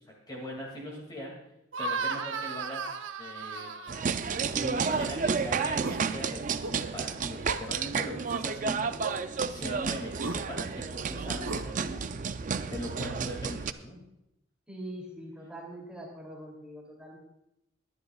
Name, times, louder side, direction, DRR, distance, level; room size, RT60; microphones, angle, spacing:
voice 1, 0.3-1.3 1.8-3.7 4.2-8.9 9.5-12.0 12.7-14.0, equal, 20° left, -2 dB, 2.3 m, -40 dB
sound 1, 1.7-4.4 4.8-5.1 5.6-6.0 6.5-6.8 7.4-7.6 8.3-8.4 9.0-9.2 10.1-10.4 11.3-11.7, right 4 dB, 75° right, 0.9 m, -35 dB
sound 2, 3.9-13.7, right 5 dB, 40° right, 0.4 m, -31 dB
voice 2, 14.7-17.2, right 1 dB, 5° right, -2 dB, 2.8 m, -43 dB
21.5 x 10.5 x 2.4 m, 0.83 s
head